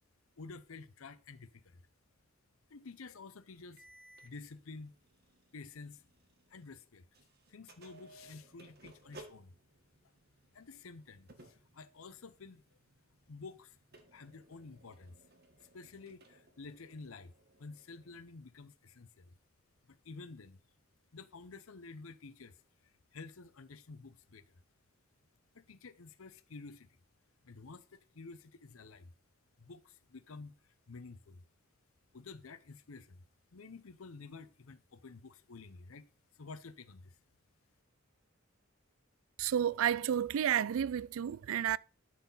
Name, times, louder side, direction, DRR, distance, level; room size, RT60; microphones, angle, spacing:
voice 1, 0.4-1.8 2.7-3.8 4.2-4.9 5.5-6.0 6.5-7.0 7.5-9.5 10.5-12.6 13.3-13.8 14.1-15.2 15.7-17.3 17.6-19.3 19.9-20.6 21.1-22.5 22.8-24.5 25.5-27.0 27.4-29.1 29.6-31.4 32.1-33.2 33.5-36.1 36.3-37.2, left 4 dB, 85° left, 0.7 m, -51 dB
sound 1, 3.8-6.8 7.1-18.3, right 2 dB, 50° right, 1.6 m, -61 dB
voice 2, 39.4-41.8, right 9 dB, 75° right, 0.3 m, -31 dB
12.0 x 4.2 x 5.5 m
head